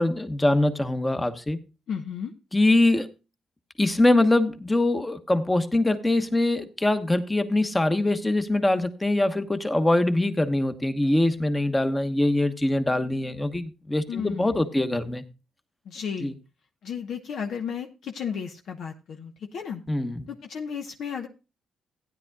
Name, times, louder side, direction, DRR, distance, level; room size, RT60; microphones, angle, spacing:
voice 1, 0.0-1.6 2.5-3.1 3.8-15.2 16.2-16.3 19.9-20.3, left 1 dB, 15° left, 1.1 m, -23 dB
voice 2, 1.9-2.3 14.1-14.7 15.8-16.3 16.8-19.8 20.3-21.3, left 7 dB, 65° left, 1.0 m, -33 dB
15.5 x 9.8 x 2.3 m
cardioid pair, 90°, 0 cm